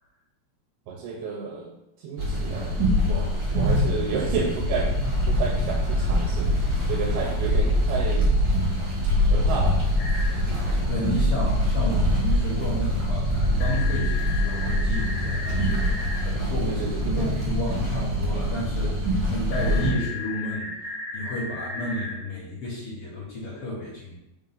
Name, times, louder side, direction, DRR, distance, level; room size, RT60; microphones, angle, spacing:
voice 1, 0.9-1.7 2.0-2.8 3.1-4.9 5.3-6.5 6.9-8.3 9.3-9.8 10.4-10.6 16.7-17.3, right 5 dB, 85° right, 0 dB, 2.8 m, -31 dB
sound 1, 2.2-19.9, equal, 50° right, 1.5 m, -24 dB
sound 2, 10.0-10.3 13.6-16.2 19.5-22.1, left 3 dB, 70° left, 2.4 m, -35 dB
voice 2, 10.9-24.2, left 2 dB, 55° left, -6 dB, 1.7 m, -32 dB
6.1 x 3.7 x 5.6 m, 0.88 s
omnidirectional pair, 4.3 m